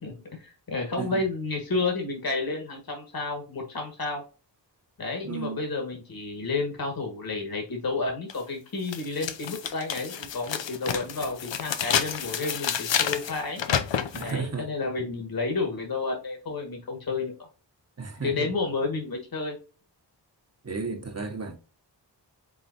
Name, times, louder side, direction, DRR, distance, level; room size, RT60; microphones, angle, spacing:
voice 1, 0.0-4.2 5.0-13.6 14.2-17.3 18.2-19.5, left 3 dB, 55° left, 1.6 m, -31 dB
voice 2, 5.2-5.6 14.1-14.7 18.0-18.5 20.6-21.6, right 5 dB, 35° right, 1.1 m, -33 dB
sound 1, 8.3-8.4 8.9-14.3, left 8 dB, 85° left, 0.7 m, -29 dB
5.0 x 3.8 x 2.6 m
wide cardioid pair, 75°, 43 cm